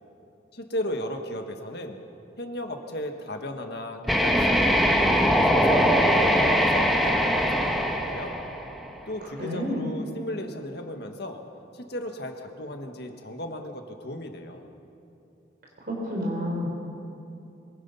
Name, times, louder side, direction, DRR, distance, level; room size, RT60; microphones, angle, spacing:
voice 1, 0.5-2.0 2.4-4.8 5.0-8.4 9.1-11.4 11.7-14.7, left 1 dB, 60° left, 4 dB, 1.7 m, -36 dB
sound 1, 4.0-9.0, equal, ahead, 1.4 m, -22 dB
voice 2, 9.4-9.9 15.9-16.7, equal, 55° right, -2 dB, 4.1 m, -29 dB
23.5 x 21.0 x 5.7 m, 2.7 s
head